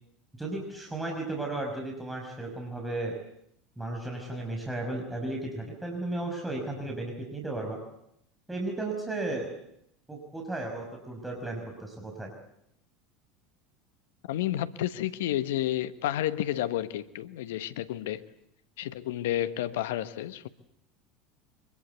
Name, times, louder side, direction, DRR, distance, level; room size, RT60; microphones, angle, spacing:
voice 1, 0.4-3.1 3.8-7.8 8.5-9.5 10.1-12.3, right 2 dB, 10° right, 5.7 m, -34 dB
voice 2, 14.3-18.2 18.8-20.5, left 13 dB, 70° left, 1.2 m, -31 dB
24.5 x 21.5 x 8.2 m
hypercardioid pair, 75°, 0 cm